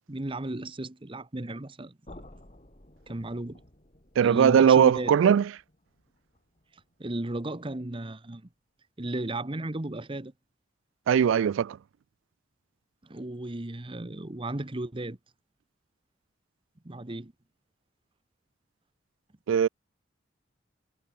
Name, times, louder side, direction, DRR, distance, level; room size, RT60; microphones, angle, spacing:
voice 1, 0.1-2.0 3.1-3.6 4.2-5.1 7.0-8.5 9.0-10.3 13.0-15.2 16.8-17.3, right 1 dB, 25° right, 1.0 m, -34 dB
sound 1, 2.0-7.9, left 1 dB, 35° left, 3.9 m, -54 dB
voice 2, 4.2-5.5 11.1-11.8 19.5-19.7, right 8 dB, 80° right, 0.3 m, -20 dB
head